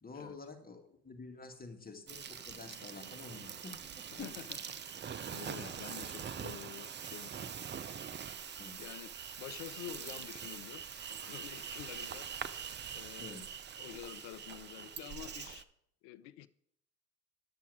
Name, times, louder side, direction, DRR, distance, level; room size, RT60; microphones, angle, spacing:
voice 1, 0.0-4.3 8.6-8.9 13.2-13.5, left 3 dB, 20° left, 1.9 m, -49 dB
Insect, 2.1-15.6, right 7 dB, 25° right, 0.6 m, -44 dB
voice 2, 4.1-4.5 4.8-7.7 8.3-8.5 8.8-12.5 12.9-13.4 13.8-15.7 16.0-16.5, left 13 dB, 60° left, 0.7 m, -49 dB
11.0 x 7.0 x 4.9 m
hypercardioid pair, 70°, 47 cm